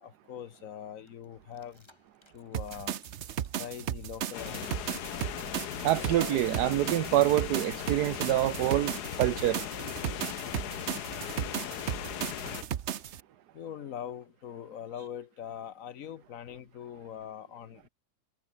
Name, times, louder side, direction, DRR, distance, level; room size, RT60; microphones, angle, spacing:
voice 1, 0.0-1.8 2.3-2.9 3.5-4.9 13.5-17.9, left 9 dB, 60° left, 1.1 m, -42 dB
sound 1, 1.1-4.6 5.0-6.6, left 1 dB, 15° left, 2.8 m, -59 dB
sound 2, 2.5-13.2, right 9 dB, 55° right, 1.0 m, -36 dB
sound 3, 4.3-12.6, left 11 dB, 80° left, 1.5 m, -38 dB
voice 2, 5.8-9.6, right 14 dB, 90° right, 1.2 m, -26 dB
omnidirectional pair, 1.7 m